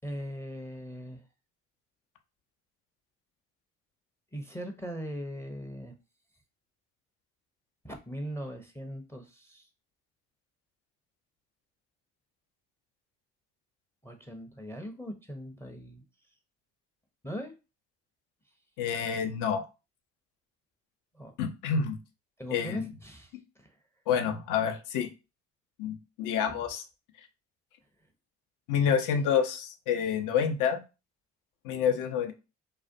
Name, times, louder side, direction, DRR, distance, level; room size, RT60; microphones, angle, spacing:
voice 1, 0.0-1.2 4.3-5.9 7.8-9.7 14.0-16.0 17.2-17.5 21.1-21.4 22.4-23.8, equal, 10° left, 5 dB, 0.5 m, -40 dB
voice 2, 18.8-19.6 21.4-22.0 22.5-22.9 24.1-25.1 25.8-26.8 28.7-30.8 31.6-32.3, left 7 dB, 65° left, 6 dB, 0.6 m, -28 dB
2.4 x 2.1 x 2.5 m, 0.29 s
hypercardioid pair, 55°, 34 cm